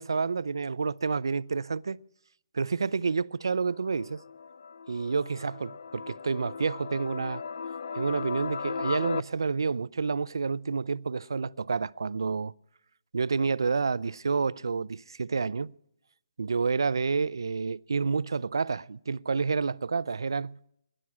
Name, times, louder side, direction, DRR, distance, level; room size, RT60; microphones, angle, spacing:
voice 1, 0.0-2.0 2.5-4.2 4.9-7.4 7.9-12.5 13.1-15.7 16.4-20.6, right 4 dB, 90° right, 0.5 m, -29 dB
sound 1, 3.7-9.2, left 6 dB, 60° left, 0.5 m, -37 dB
19.0 x 11.0 x 5.9 m
hypercardioid pair, 160°, 2 cm